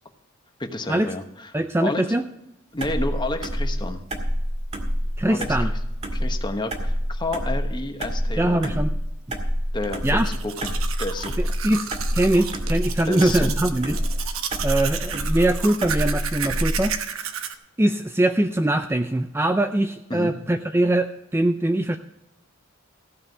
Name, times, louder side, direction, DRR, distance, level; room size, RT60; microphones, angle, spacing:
voice 1, 0.6-1.5 1.8-2.1 2.7-4.0 5.3-5.7 6.1-8.8 9.7-11.3 13.1-13.5 20.1-20.3, left 2 dB, 20° left, 6 dB, 1.1 m, -30 dB
voice 2, 1.5-2.2 5.2-5.7 8.4-8.9 10.0-10.3 11.6-14.0 14.6-16.9 17.8-22.0, right 1 dB, 10° right, 7 dB, 0.4 m, -22 dB
sound 1, 2.8-17.0, equal, 30° right, 1.8 m, -27 dB
Domestic sounds home sounds, 9.8-17.5, right 8 dB, 75° right, 1.0 m, -33 dB
15.5 x 5.6 x 7.9 m, 0.88 s
head